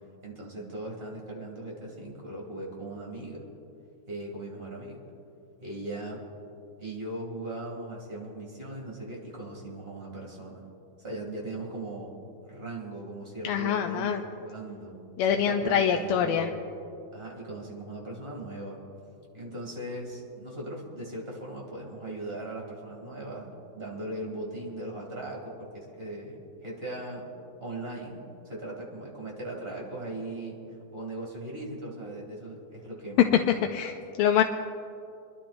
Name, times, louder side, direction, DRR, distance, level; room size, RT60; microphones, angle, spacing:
voice 1, 0.2-3.4 4.1-5.0 5.6-6.2 6.8-10.6 11.0-12.1 12.4-15.0 15.3-16.6 17.1-18.8 19.3-27.3 27.6-30.6 30.9-33.6 33.8-33.9, right 2 dB, 25° right, -3 dB, 2.7 m, -39 dB
voice 2, 13.4-14.2 15.2-16.5 33.5-34.4, left 8 dB, 85° left, 5 dB, 1.5 m, -25 dB
29.0 x 11.5 x 2.6 m, 2.6 s
omnidirectional pair, 2.4 m